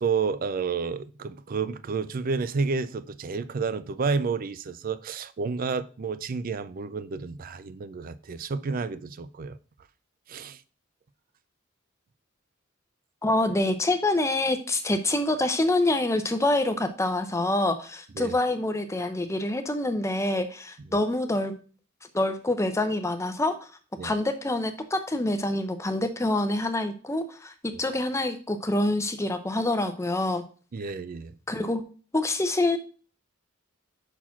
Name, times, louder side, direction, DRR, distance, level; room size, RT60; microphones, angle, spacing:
voice 1, 0.0-9.6 10.3-10.6 18.2-18.3 24.0-24.1 30.7-31.3, right 5 dB, 45° right, 0.4 m, -30 dB
voice 2, 13.2-21.6 22.1-23.5 24.0-30.4 31.5-31.8 32.1-32.8, left 2 dB, 15° left, 0.6 m, -26 dB
5.9 x 4.4 x 5.7 m
head